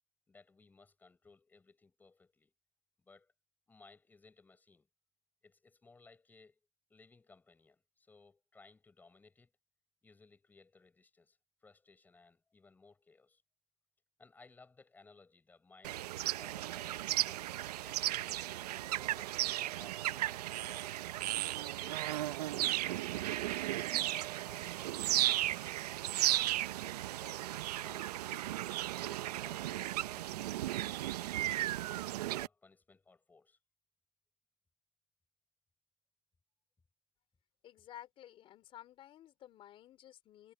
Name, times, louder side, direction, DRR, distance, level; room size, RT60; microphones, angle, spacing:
voice 1, 0.3-2.5 3.0-3.3 3.7-4.9 5.4-6.6 6.9-9.5 10.0-11.4 11.6-13.4 14.2-16.0 16.4-18.3 18.8-20.9 21.7-24.2 24.4-25.0 25.2-25.7 26.4-30.5 30.8-31.8 32.3-33.6, left 4 dB, 10° left, 6.4 m, -62 dB
sound 1, 15.8-32.5, right 14 dB, 75° right, 0.8 m, -35 dB
voice 2, 37.6-40.5, left 12 dB, 25° left, 3.9 m, -54 dB
supercardioid pair, 155°, 20 cm